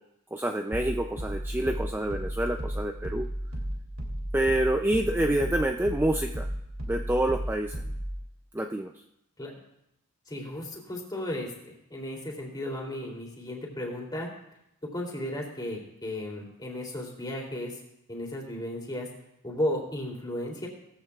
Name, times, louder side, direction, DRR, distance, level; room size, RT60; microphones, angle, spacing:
voice 1, 0.3-3.3 4.3-6.5 6.9-7.8 8.5-8.9, right 1 dB, 10° right, 3 dB, 0.5 m, -27 dB
sound 1, 0.7-8.2, equal, 65° right, 2.8 m, -34 dB
voice 2, 10.3-14.3 14.9-17.8 18.1-19.1 19.4-20.7, left 1 dB, 20° left, -2 dB, 3.1 m, -34 dB
19.0 x 14.5 x 2.4 m, 0.82 s
head